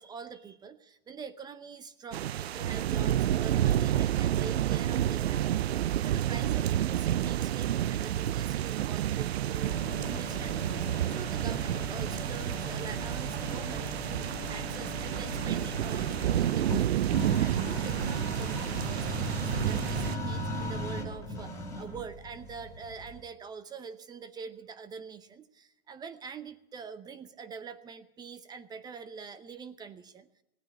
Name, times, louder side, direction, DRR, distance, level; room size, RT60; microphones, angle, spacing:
voice 1, 0.0-30.3, right 5 dB, 15° right, 13 dB, 0.7 m, -45 dB
sound 1, 2.1-20.2, right 11 dB, 90° right, 0.5 m, -30 dB
sound 2, 9.6-23.2, left 1 dB, 10° left, 3.3 m, -38 dB
17.0 x 9.3 x 8.5 m, 0.84 s
hypercardioid pair, 140°, 30 cm